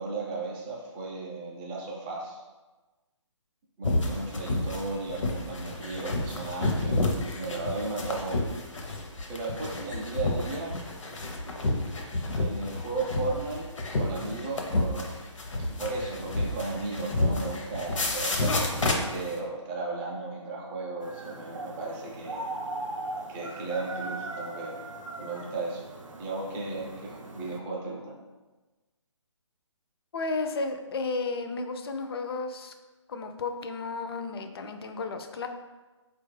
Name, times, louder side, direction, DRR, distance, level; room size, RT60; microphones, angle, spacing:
voice 1, 0.0-2.4 3.8-7.1 7.4-8.4 9.3-10.8 12.4-13.6 13.9-15.1 15.8-22.5 23.3-24.8 25.2-25.8 26.2-28.1, right 3 dB, 10° right, -3 dB, 0.4 m, -35 dB
sound 1, 3.8-19.4, left 2 dB, 85° left, 0.7 m, -30 dB
sound 2, 21.0-27.6, right 2 dB, 90° right, 0.5 m, -39 dB
voice 2, 30.1-32.7 33.1-35.5, left 3 dB, 50° left, 6 dB, 0.4 m, -33 dB
4.4 x 2.4 x 3.1 m, 1.2 s
figure-of-eight pair, 145°, 16 cm